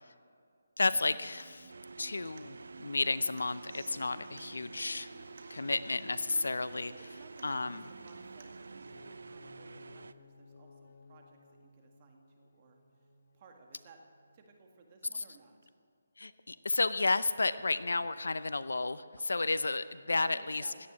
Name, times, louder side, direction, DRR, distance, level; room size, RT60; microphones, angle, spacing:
voice 1, 0.8-1.7 2.0-5.1 5.5-6.9 7.4-7.8 15.1-15.2 16.2-20.7, left 3 dB, 85° left, 14 dB, 0.6 m, -32 dB
Human voice / Acoustic guitar, 0.9-8.9, right 4 dB, 55° right, 1.9 m, -55 dB
sound 1, 1.7-10.1, right 3 dB, 75° right, 0.6 m, -49 dB
voice 2, 7.0-12.8 13.3-14.0 14.3-15.7 19.3-19.5 20.1-20.8, right 4 dB, 30° right, 3 dB, 1.9 m, -59 dB
sound 2, 8.8-14.6, left 3 dB, 50° left, 1.5 m, -60 dB
17.0 x 12.0 x 6.2 m, 2.2 s
hypercardioid pair, 165°, 0 cm